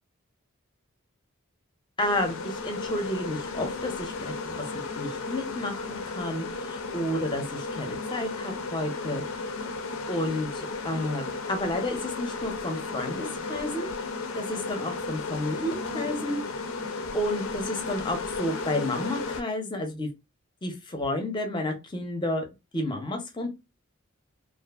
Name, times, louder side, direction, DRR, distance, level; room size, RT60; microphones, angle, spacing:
sound 1, 2.0-19.4, left 3 dB, 75° left, 0.4 m, -34 dB
voice 1, 2.0-9.5 10.1-13.9 14.4-16.4 17.1-20.1 20.6-22.5 22.7-23.5, left 1 dB, 20° left, 4 dB, 0.5 m, -31 dB
2.5 x 2.4 x 2.3 m, 0.24 s
head